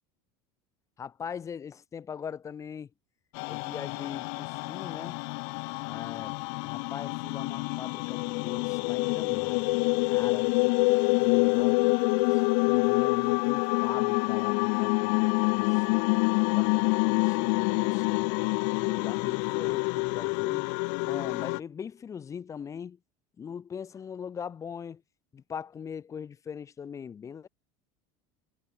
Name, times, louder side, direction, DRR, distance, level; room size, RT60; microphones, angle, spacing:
voice 1, 1.0-2.9 3.5-5.2 5.8-9.7 10.0-10.5 10.9-11.8 12.3-12.4 12.7-16.1 16.5-18.3 18.8-20.7 21.0-23.0 23.4-25.0 25.3-27.5, left 7 dB, 25° left, 6.4 m, -41 dB
sound 1, 3.3-21.6, left 40 dB or more, 70° left, 0.8 m, -27 dB
supercardioid pair, 130°, 12 cm